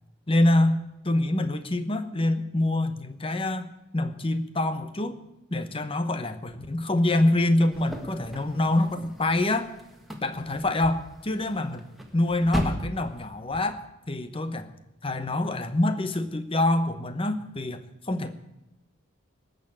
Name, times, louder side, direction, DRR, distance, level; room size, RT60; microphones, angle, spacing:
voice 1, 0.3-5.2 5.5-9.7 10.2-11.8 12.1-14.7 15.0-18.4, left 1 dB, 25° left, 10 dB, 1.0 m, -26 dB
sound 1, 7.7-13.6, equal, ahead, 1.6 m, -36 dB
18.5 x 6.8 x 8.6 m, 0.94 s
head